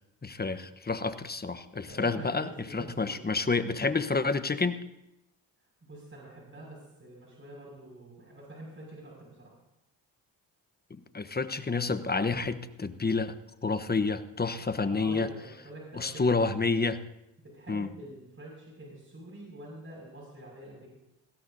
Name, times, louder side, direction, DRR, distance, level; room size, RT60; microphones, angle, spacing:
voice 1, 0.2-4.8 11.1-13.4 13.6-15.3 15.9-17.0 17.7-17.9, left 4 dB, 20° left, 11 dB, 1.1 m, -29 dB
voice 2, 1.9-3.6 5.8-9.5 14.8-16.4 17.4-20.9, right 1 dB, 25° right, -2 dB, 6.3 m, -47 dB
20.0 x 16.0 x 2.8 m, 0.86 s
supercardioid pair, 55°, 44 cm